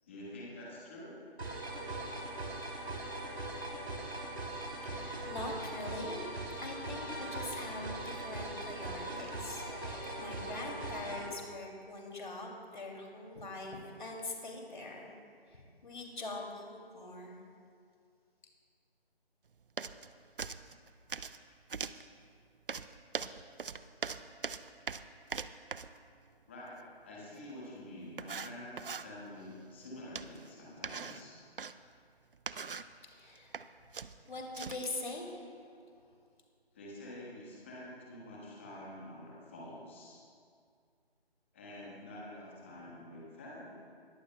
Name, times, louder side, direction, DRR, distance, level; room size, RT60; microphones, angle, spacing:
voice 1, 0.0-1.2 26.5-31.4 36.7-40.2 41.5-43.8, left 1 dB, 10° left, -5 dB, 1.3 m, -47 dB
sound 1, 1.4-11.3, right 1 dB, 90° right, 3.0 m, -40 dB
voice 2, 4.8-6.3 6.6-15.1 15.5-17.4 33.1-33.6 34.3-35.6, left 2 dB, 50° left, 0 dB, 2.6 m, -43 dB
sound 2, 19.8-20.1 20.4-21.4 21.7-22.1 22.7-26.0 27.5-27.6 28.2-29.1 30.2-30.5 30.8-31.7 32.3-32.9 33.4-33.7 33.9-34.9, right 5 dB, 60° right, 0.5 m, -41 dB
20.5 x 13.0 x 2.2 m, 2.2 s
figure-of-eight pair, 165°, 31 cm